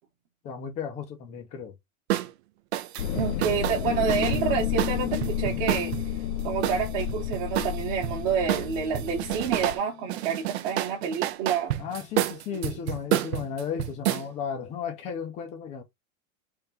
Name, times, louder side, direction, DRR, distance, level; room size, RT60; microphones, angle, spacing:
voice 1, 0.4-1.8 11.8-15.8, left 7 dB, 15° left, 0.6 m, -34 dB
sound 1, 2.1-2.3 2.7-6.0 6.6-8.1 8.5-9.8 10.1-14.2, right 13 dB, 50° right, 0.6 m, -29 dB
sound 2, 3.0-9.8, left 10 dB, 60° left, 0.6 m, -32 dB
voice 2, 3.1-5.9 6.4-11.7, right 7 dB, 35° right, 1.2 m, -28 dB
sound 3, 3.9-10.8, left 14 dB, 85° left, 0.9 m, -36 dB
3.7 x 3.0 x 4.1 m
supercardioid pair, 170°, 41 cm